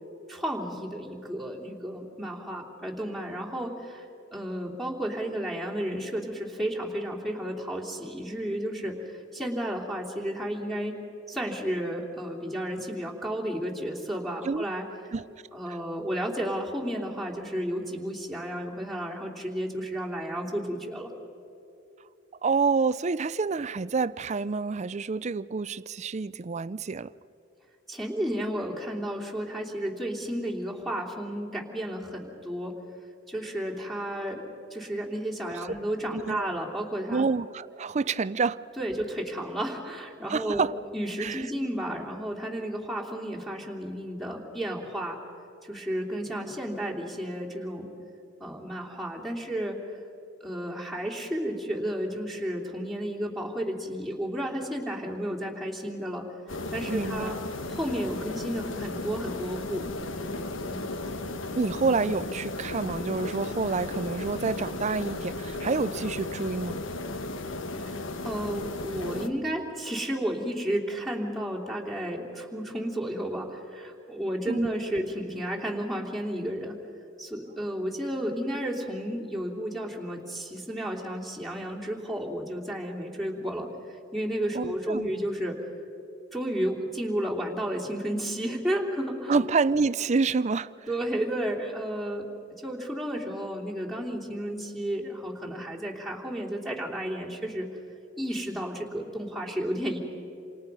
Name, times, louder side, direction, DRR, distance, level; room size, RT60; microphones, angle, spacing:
voice 1, 0.3-4.0 4.3-11.0 11.3-14.8 15.5-21.1 27.9-32.7 33.3-34.4 34.7-37.2 38.8-40.7 40.9-45.2 45.6-47.9 48.4-49.8 50.4-56.3 56.7-57.4 57.7-59.9 60.6-60.8 67.7-76.8 77.2-85.6 86.3-89.3 90.9-92.3 92.6-97.7 98.2-100.0, equal, ahead, -4 dB, 3.1 m, -32 dB
voice 2, 22.4-27.1 35.5-35.7 36.1-36.5 37.1-38.6 40.3-40.7 41.2-41.4 56.9-57.4 61.6-66.8 74.5-74.7 84.5-85.1 89.3-90.7, right 4 dB, 35° right, 17 dB, 0.5 m, -28 dB
sound 1, 56.5-69.3, left 2 dB, 80° left, 1.2 m, -35 dB
27.5 x 27.5 x 5.5 m, 2.7 s
head